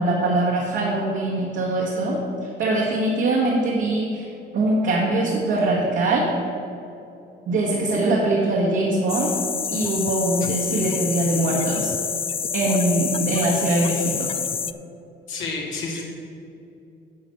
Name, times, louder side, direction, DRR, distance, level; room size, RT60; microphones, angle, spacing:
voice 1, 0.0-4.3 4.5-6.3 7.5-9.3 9.7-11.9 12.5-14.3, right 2 dB, 75° right, -5 dB, 1.8 m, -22 dB
sound 1, 9.1-14.7, left 7 dB, 30° left, 0.4 m, -27 dB
voice 2, 10.7-11.0 15.3-16.0, left 3 dB, 80° left, -2 dB, 2.3 m, -30 dB
10.5 x 5.1 x 7.0 m, 2.7 s
cardioid pair, 90°, 20 cm